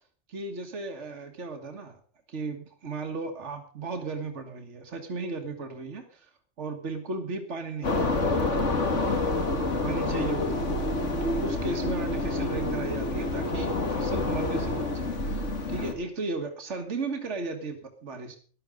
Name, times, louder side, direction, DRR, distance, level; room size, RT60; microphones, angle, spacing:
voice 1, 0.3-2.0 2.3-6.3 6.6-8.2 9.8-10.7 11.2-18.4, right 3 dB, 70° right, 5 dB, 2.0 m, -35 dB
sound 1, 7.8-15.9, left 2 dB, 70° left, 2.4 m, -28 dB
14.0 x 11.5 x 5.1 m, 0.43 s
omnidirectional pair, 1.3 m